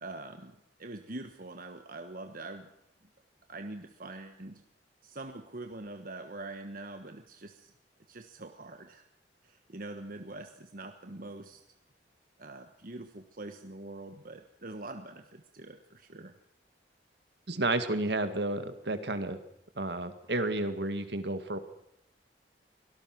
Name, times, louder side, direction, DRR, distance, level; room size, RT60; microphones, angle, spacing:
voice 1, 0.0-2.7 3.5-4.6 5.0-7.7 8.1-9.0 9.4-11.6 12.4-16.3, right 2 dB, 50° right, 6 dB, 1.4 m, -44 dB
voice 2, 17.5-19.4 19.8-21.6, right 2 dB, 70° right, 9 dB, 2.1 m, -31 dB
24.0 x 18.0 x 6.1 m, 0.77 s
head